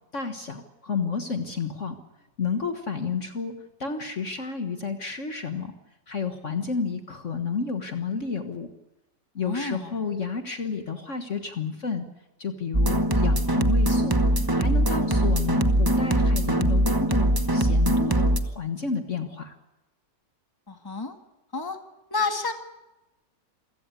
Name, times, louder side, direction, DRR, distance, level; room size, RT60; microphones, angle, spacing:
voice 1, 0.1-2.0 2.4-5.7 6.1-8.7 9.3-12.0 12.4-19.5, left 5 dB, 45° left, 7 dB, 1.7 m, -31 dB
voice 2, 9.4-10.0 20.7-21.1 21.5-21.8 22.1-22.5, left 3 dB, 15° left, 6 dB, 1.8 m, -29 dB
sound 1, 12.7-18.4, right 1 dB, 15° right, 0.9 m, -22 dB
27.0 x 16.5 x 8.3 m, 0.99 s
omnidirectional pair, 1.8 m